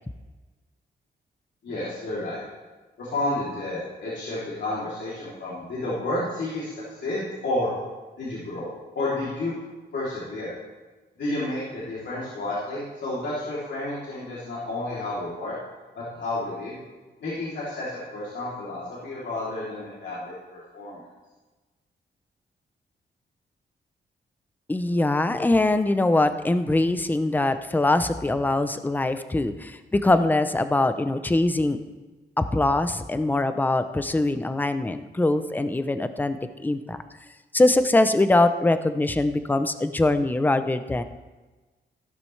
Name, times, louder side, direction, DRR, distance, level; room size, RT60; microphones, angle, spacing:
voice 1, 1.6-2.4 3.0-7.7 8.2-9.5 9.9-10.5 11.2-15.6 15.9-16.8 17.2-21.0, left 2 dB, 80° left, -8 dB, 3.1 m, -31 dB
voice 2, 24.7-31.8 32.4-36.4 36.6-37.0 37.5-41.0, left 2 dB, 10° left, 10 dB, 0.5 m, -22 dB
15.5 x 11.5 x 3.3 m, 1.2 s
wide cardioid pair, 160°, 18 cm